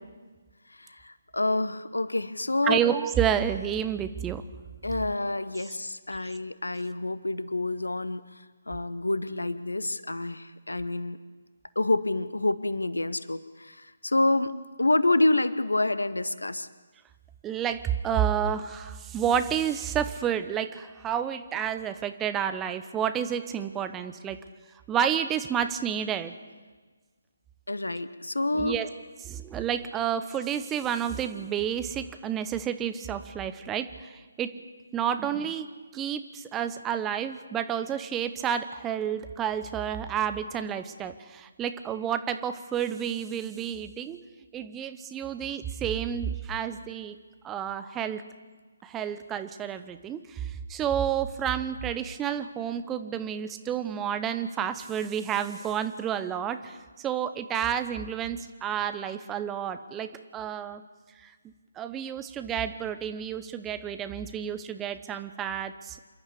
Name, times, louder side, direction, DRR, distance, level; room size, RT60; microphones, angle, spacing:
voice 1, 0.8-2.8 4.8-8.2 8.7-11.2 11.7-14.5 14.8-16.7 27.7-28.8, left 2 dB, 75° left, 15 dB, 1.0 m, -27 dB
voice 2, 2.6-4.4 6.2-6.4 17.4-24.4 24.9-26.3 28.6-28.9 29.2-34.1 34.4-34.5 34.9-35.7 35.9-44.2 44.5-47.2 47.4-48.2 48.8-60.8 61.2-61.3 61.8-66.0, right 9 dB, 15° right, 10 dB, 0.9 m, -30 dB
27.5 x 11.5 x 8.4 m, 1.3 s
figure-of-eight pair, 140°, 0 cm